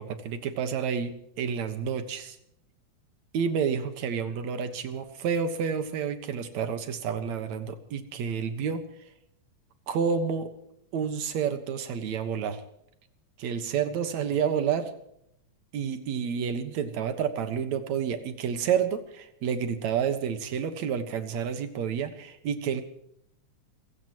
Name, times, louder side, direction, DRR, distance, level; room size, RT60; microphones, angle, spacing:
voice 1, 0.0-2.4 3.3-8.8 9.9-10.5 10.9-12.6 13.4-14.9 15.7-22.8, right 7 dB, 70° right, 8 dB, 2.7 m, -29 dB
27.0 x 16.0 x 3.1 m, 0.75 s
omnidirectional pair, 3.4 m